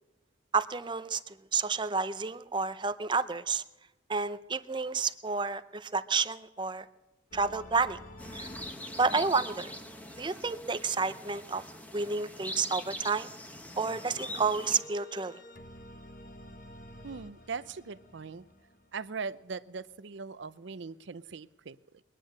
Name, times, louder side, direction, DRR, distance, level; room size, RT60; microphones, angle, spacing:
voice 1, 0.5-3.6 4.1-6.9 7.3-8.0 8.3-8.5 9.0-9.7 10.2-11.6 11.9-13.3 13.8-15.4, right 4 dB, 25° right, 0.5 m, -30 dB
sound 1, 7.3-11.4 13.8-19.5, left 1 dB, 40° left, 1.0 m, -51 dB
sound 2, 8.2-14.8, left 1 dB, 10° left, 1.1 m, -43 dB
voice 2, 17.0-18.4 18.9-22.0, right 5 dB, 70° right, 0.6 m, -40 dB
22.0 x 10.0 x 6.4 m
head